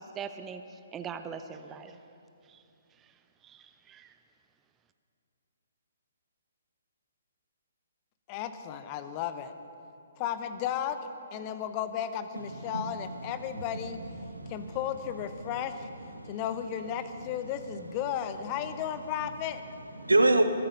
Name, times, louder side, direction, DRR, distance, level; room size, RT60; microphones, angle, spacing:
voice 1, 0.0-2.0 2.5-2.6 3.0-3.1 3.4-4.1, right 6 dB, 15° right, 9 dB, 0.6 m, -42 dB
voice 2, 8.3-9.5 10.2-14.0 14.5-15.9 16.2-19.6, left 9 dB, 30° left, 11 dB, 0.9 m, -34 dB
voice 3, 12.4-14.8 15.3-16.4 17.0-17.5 18.6-18.8 19.7-20.4, right 2 dB, 75° right, 7 dB, 1.2 m, -30 dB
24.0 x 9.0 x 5.6 m, 2.6 s
figure-of-eight pair, 130°, 0 cm